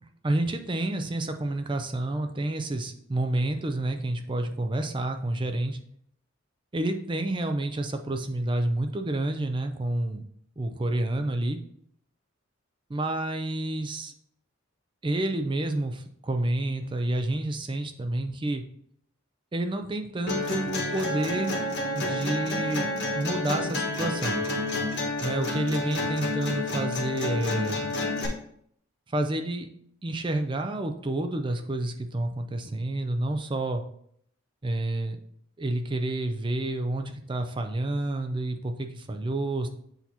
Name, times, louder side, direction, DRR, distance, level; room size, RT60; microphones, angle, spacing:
voice 1, 0.2-5.8 6.7-10.2 10.6-11.6 12.9-14.1 15.0-18.6 19.5-21.6 21.9-24.4 25.2-27.9 29.1-29.7 30.0-33.8 34.6-35.2 35.6-39.7, right 1 dB, 25° right, 6 dB, 0.4 m, -29 dB
sound 1, 20.3-28.3, left 2 dB, 55° left, 1.2 m, -29 dB
8.0 x 2.9 x 4.1 m, 0.67 s
head